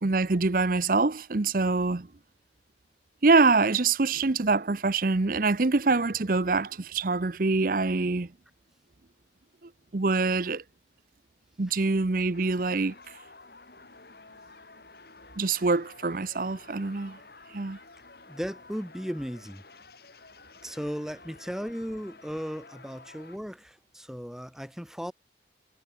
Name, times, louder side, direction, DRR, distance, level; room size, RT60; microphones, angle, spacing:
voice 1, 0.0-2.1 3.2-8.3 9.9-10.6 11.6-12.9 15.4-17.2 17.5-17.8, right 3 dB, 50° right, 0.8 m, -25 dB
sound 1, 12.3-23.4, left 3 dB, 55° left, 3.5 m, -51 dB
voice 2, 18.3-19.6 20.6-25.1, equal, ahead, 1.4 m, -36 dB
head